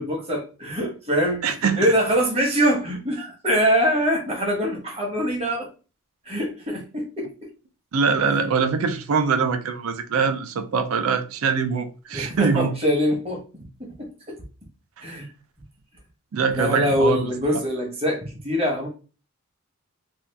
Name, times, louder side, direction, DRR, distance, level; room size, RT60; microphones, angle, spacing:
voice 1, 0.0-1.5 1.8-5.7 6.3-7.3 12.1-13.4 13.8-14.4 15.0-15.3 16.5-18.9, equal, 30° right, 0.9 m, -23 dB
voice 2, 1.4-1.8 7.9-12.7 15.0-15.2 16.3-17.6, right 5 dB, 80° right, 0.4 m, -23 dB
2.7 x 2.3 x 3.3 m
head